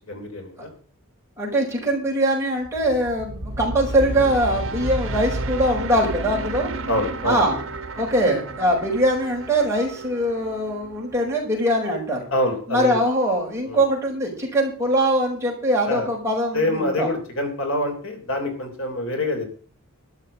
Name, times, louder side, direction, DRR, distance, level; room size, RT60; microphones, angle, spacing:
voice 1, 0.1-0.7 6.9-7.4 12.3-12.9 13.6-13.8 15.9-16.1 16.5-19.4, left 1 dB, 60° left, 4 dB, 3.3 m, -25 dB
voice 2, 1.4-6.7 7.2-7.6 8.0-12.3 12.7-17.1, right 1 dB, 10° right, -2 dB, 5.5 m, -22 dB
sound 1, 2.6-11.8, right 2 dB, 60° right, 1.5 m, -32 dB
12.5 x 6.7 x 8.8 m, 0.43 s
head